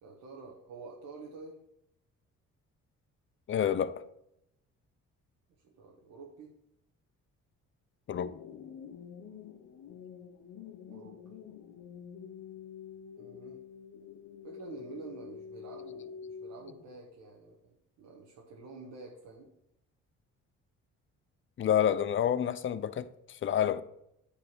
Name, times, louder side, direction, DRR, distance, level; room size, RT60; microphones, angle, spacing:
voice 1, 0.0-1.6 5.6-6.5 10.8-11.3 13.2-13.6 14.4-19.5, right 4 dB, 80° right, 1.3 m, -49 dB
voice 2, 3.5-4.0 8.1-8.3 21.6-23.8, left 9 dB, 40° left, 0.5 m, -29 dB
sound 1, 8.1-17.0, left 7 dB, 70° left, 0.9 m, -47 dB
10.0 x 3.4 x 6.1 m
cardioid pair, 90°, 30 cm